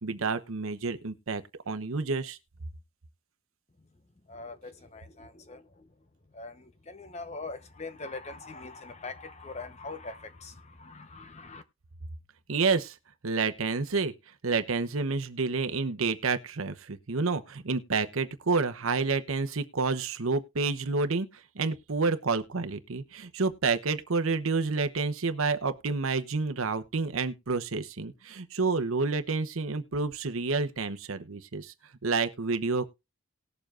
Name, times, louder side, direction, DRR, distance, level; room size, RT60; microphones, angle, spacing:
voice 1, 0.0-2.4 12.5-12.9 13.2-14.1 14.4-21.3 21.5-31.7 32.0-32.9, right 4 dB, 75° right, 0.9 m, -29 dB
voice 2, 4.3-5.9 6.3-11.6, left 3 dB, 30° left, 0.9 m, -42 dB
19.0 x 7.0 x 2.5 m
head